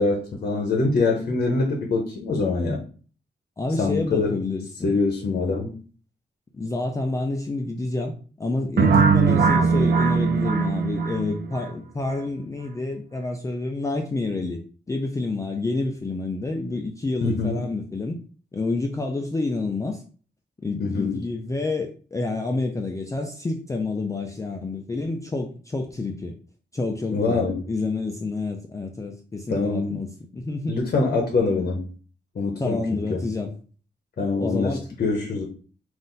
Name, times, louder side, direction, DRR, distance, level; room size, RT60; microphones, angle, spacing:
voice 1, 0.0-2.8 3.8-4.3 4.8-5.7 8.8-9.1 17.2-17.6 20.8-21.2 27.1-27.6 29.5-30.0 30.7-31.8 32.4-33.3 34.2-35.5, left 3 dB, 50° left, 2 dB, 0.8 m, -24 dB
voice 2, 3.6-5.0 6.5-14.6 14.9-18.2 18.5-20.0 20.6-26.3 26.7-30.8 32.6-33.5 34.4-34.8, left 3 dB, 15° left, 3 dB, 0.4 m, -28 dB
sound 1, 8.8-11.6, right 5 dB, 65° right, 0.5 m, -20 dB
3.9 x 2.5 x 3.8 m, 0.40 s
wide cardioid pair, 165°, 19 cm